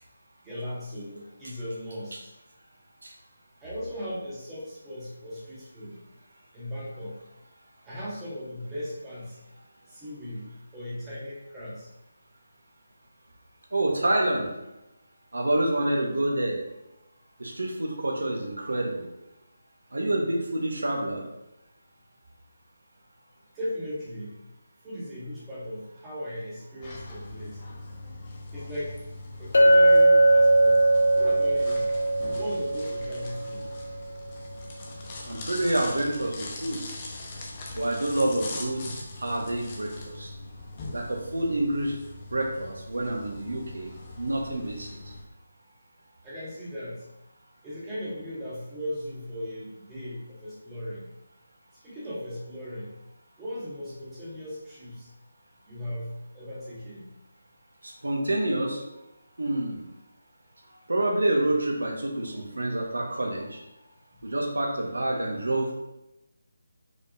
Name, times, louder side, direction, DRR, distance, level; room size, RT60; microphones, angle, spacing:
voice 1, 0.4-2.3 3.6-6.0 6.5-7.2 7.8-9.4 9.9-10.5 10.7-11.9 23.5-24.4 24.8-27.6 28.5-29.0 29.4-30.9 31.1-31.9 32.3-33.6 46.2-47.1 47.6-51.1 51.8-52.9 53.4-55.1 55.7-57.1 64.1-64.2, equal, 10° right, -9 dB, 1.6 m, -37 dB
voice 2, 13.7-14.5 15.3-16.5 17.4-19.1 19.9-21.2 35.3-36.8 37.7-40.3 40.9-41.9 42.3-44.9 58.0-58.8 59.4-59.8 60.9-63.6 64.2-65.7, right 1 dB, 75° right, 0 dB, 1.2 m, -27 dB
sound 1, 26.8-45.2, left 2 dB, 30° left, 0.8 m, -41 dB
Chink clink, 29.5-33.8, right 1 dB, 65° left, 0.6 m, -20 dB
5.0 x 4.1 x 2.5 m, 0.93 s
figure-of-eight pair, 160°, 0 cm